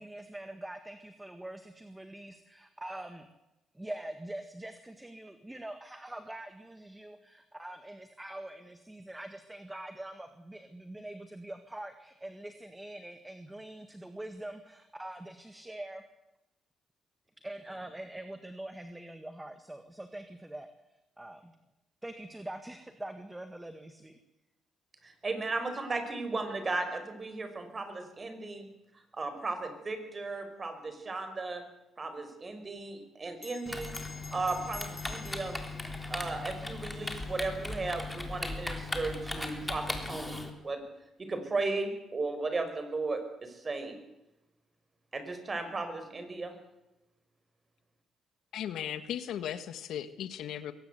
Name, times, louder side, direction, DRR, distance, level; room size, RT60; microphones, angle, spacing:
voice 1, 0.0-3.3 3.7-16.0 17.4-21.6 22.0-24.2, right 1 dB, 10° right, 8 dB, 1.8 m, -44 dB
voice 2, 25.0-28.7 29.1-31.6 32.0-34.0 34.3-35.6 36.1-40.8 41.2-44.0 45.1-46.5, right 3 dB, 30° right, 8 dB, 5.3 m, -35 dB
Bell, 33.4-38.2, left 4 dB, 35° left, 2.6 m, -50 dB
Typing, 33.7-40.5, left 2 dB, 10° left, 3.6 m, -38 dB
voice 3, 48.5-50.7, left 10 dB, 80° left, 12 dB, 1.5 m, -37 dB
22.0 x 18.5 x 8.2 m, 0.92 s
cardioid pair, 90°, 0 cm